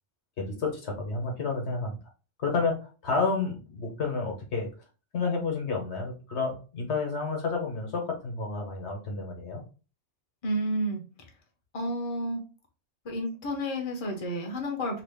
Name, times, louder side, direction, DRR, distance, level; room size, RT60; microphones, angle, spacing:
voice 1, 0.4-2.0 2.4-4.7 5.1-9.6, left 4 dB, 70° left, 1 dB, 1.2 m, -30 dB
voice 2, 10.4-11.0 11.7-12.4 13.0-15.0, equal, 35° left, 1 dB, 0.7 m, -30 dB
2.9 x 2.3 x 3.4 m, 0.35 s
omnidirectional pair, 1.2 m